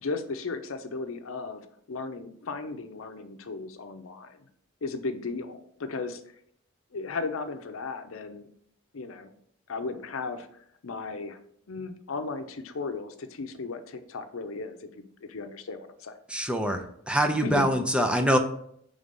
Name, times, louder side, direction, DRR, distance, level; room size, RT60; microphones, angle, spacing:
voice 1, 0.0-1.6 1.9-4.4 4.8-6.2 6.9-8.5 8.9-9.3 9.7-10.5 10.8-11.4 11.7-16.2 17.4-17.7, left 3 dB, 85° left, 8 dB, 0.6 m, -35 dB
voice 2, 16.3-18.4, equal, 5° right, 5 dB, 0.5 m, -24 dB
5.3 x 3.5 x 5.2 m, 0.67 s
head